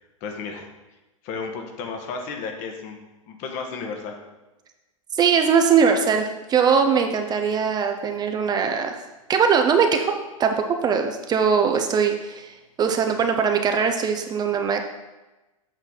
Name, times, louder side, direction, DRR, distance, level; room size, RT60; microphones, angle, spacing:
voice 1, 0.2-0.7 1.2-3.0 3.3-4.2, left 5 dB, 45° left, 3 dB, 1.3 m, -33 dB
voice 2, 5.1-9.0 9.3-14.8, right 6 dB, 25° right, 5 dB, 0.6 m, -21 dB
8.0 x 5.6 x 4.0 m, 1.1 s
figure-of-eight pair, 95°, 18 cm